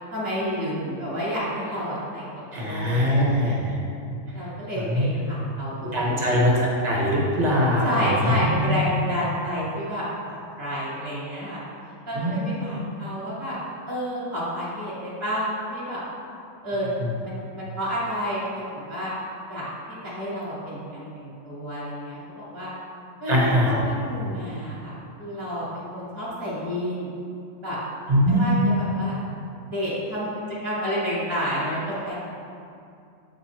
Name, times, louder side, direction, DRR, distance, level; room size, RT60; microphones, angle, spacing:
voice 1, 0.1-2.2 2.6-3.6 4.3-6.6 7.8-10.1 10.6-11.6 12.0-13.6 13.9-16.0 16.6-16.9 17.2-19.1 19.5-22.7 23.2-27.1 27.6-27.8 28.3-29.2 29.6-30.3 30.6-32.1, equal, 10° right, -9 dB, 1.3 m, -30 dB
voice 2, 2.5-3.7 4.8-5.1 5.8-8.7 12.1-12.5 17.0-17.1 23.3-23.8 28.1-28.6, equal, 30° right, -4 dB, 1.0 m, -22 dB
7.9 x 3.2 x 4.3 m, 2.5 s
omnidirectional pair, 1.9 m